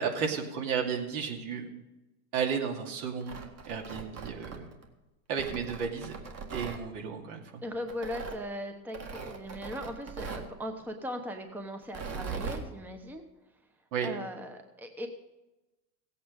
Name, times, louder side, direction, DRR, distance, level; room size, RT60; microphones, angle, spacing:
voice 1, 0.0-1.6 2.3-3.4 3.7-4.7 5.3-6.1 6.5-7.4 13.9-14.1, right 6 dB, 65° right, 2 dB, 2.6 m, -33 dB
Tearing, 3.1-4.9 5.4-6.8 7.9-8.4 8.9-10.5 11.8-12.6, right 5 dB, 35° right, 1.8 m, -40 dB
voice 2, 7.6-9.0 9.2-13.2 14.0-15.1, equal, 5° right, 6 dB, 0.9 m, -38 dB
17.0 x 8.5 x 5.2 m, 1.0 s
supercardioid pair, 120°, 47 cm